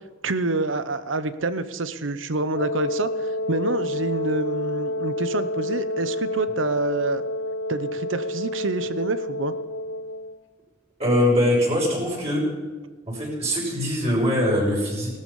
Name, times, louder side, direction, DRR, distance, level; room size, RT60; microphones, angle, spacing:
voice 1, 0.2-7.2 7.7-9.5, right 2 dB, 85° right, 13 dB, 0.9 m, -27 dB
Wind instrument woodwind instrument, 2.5-10.4, left 1 dB, 90° left, 0.9 m, -29 dB
voice 2, 11.0-12.5 13.1-15.1, equal, 35° right, -4 dB, 5.9 m, -22 dB
18.0 x 13.0 x 5.6 m, 1.4 s
head